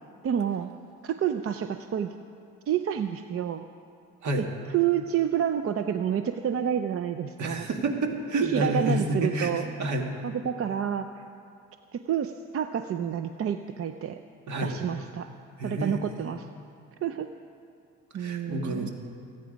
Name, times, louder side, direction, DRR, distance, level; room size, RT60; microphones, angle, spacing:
voice 1, 0.2-0.7 1.0-2.2 2.7-3.7 4.4-4.5 4.7-7.7 8.3-9.6 10.2-11.1 11.9-14.2 14.6-15.3 15.6-16.5 17.0-17.3 18.1-18.9, right 9 dB, 50° right, 8 dB, 0.6 m, -28 dB
voice 2, 7.4-10.2 14.5-14.8 15.6-16.0 18.2-18.9, right 1 dB, 70° right, 3 dB, 1.9 m, -29 dB
25.0 x 9.0 x 5.2 m, 2.3 s
cardioid pair, 90°, 30 cm